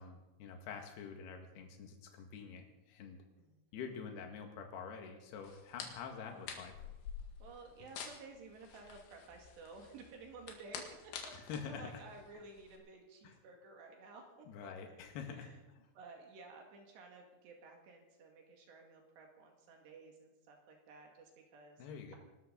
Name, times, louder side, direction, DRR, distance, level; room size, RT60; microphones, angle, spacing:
voice 1, 0.0-3.2 3.7-6.7 11.5-12.0 13.2-13.4 14.5-15.5 21.8-22.2, left 6 dB, 65° left, 3 dB, 3.7 m, -46 dB
voice 2, 3.4-4.0 7.4-11.1 11.7-14.5 15.3-15.6 16.0-21.9, right 3 dB, 70° right, 2 dB, 4.2 m, -54 dB
sound 1, 5.4-12.8, left 7 dB, 90° left, 4.2 m, -49 dB
25.0 x 13.0 x 4.0 m, 1.0 s
omnidirectional pair, 5.4 m